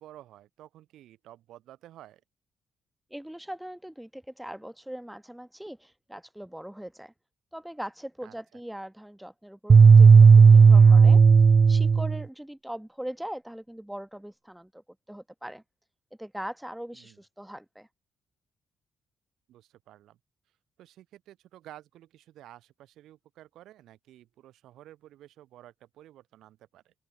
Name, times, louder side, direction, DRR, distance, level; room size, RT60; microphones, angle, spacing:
voice 1, 0.0-2.2 8.2-8.6 16.9-17.2 19.5-20.2 20.8-26.9, right 13 dB, 85° right, 7.3 m, -52 dB
voice 2, 3.1-7.1 7.5-11.2 11.7-14.8 15.1-15.6 16.2-17.9, right 1 dB, 5° right, 2.7 m, -40 dB
sound 1, 9.7-12.2, right 5 dB, 45° right, 0.3 m, -13 dB
open air
cardioid pair, 75°, 0 cm